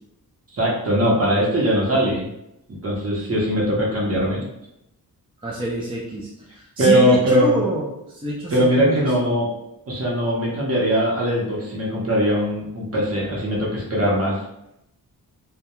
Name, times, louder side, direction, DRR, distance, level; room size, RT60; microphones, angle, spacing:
voice 1, 0.5-2.3 2.8-4.4 6.8-7.6 8.5-9.5 9.9-14.4, equal, 35° right, -4 dB, 0.8 m, -20 dB
voice 2, 5.4-9.3, right 1 dB, 15° right, -4 dB, 0.3 m, -26 dB
2.2 x 2.2 x 2.9 m, 0.84 s
wide cardioid pair, 135°, 39 cm